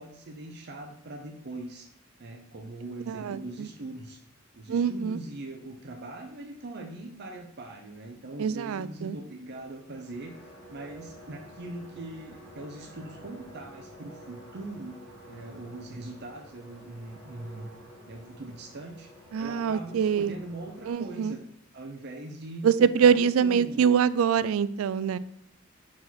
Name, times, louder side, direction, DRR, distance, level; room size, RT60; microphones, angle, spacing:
voice 1, 0.0-1.9 2.2-4.2 4.5-15.0 15.3-17.7 18.1-19.1 19.4-21.4 21.7-23.8, right 2 dB, 55° right, 3 dB, 0.7 m, -41 dB
voice 2, 3.1-3.7 4.7-5.2 8.4-9.2 19.3-20.4 20.9-21.4 22.6-25.2, right 7 dB, 80° right, 16 dB, 0.3 m, -24 dB
sound 1, 9.5-20.9, right 1 dB, 10° left, 2.5 m, -50 dB
4.8 x 4.2 x 5.9 m, 0.70 s
head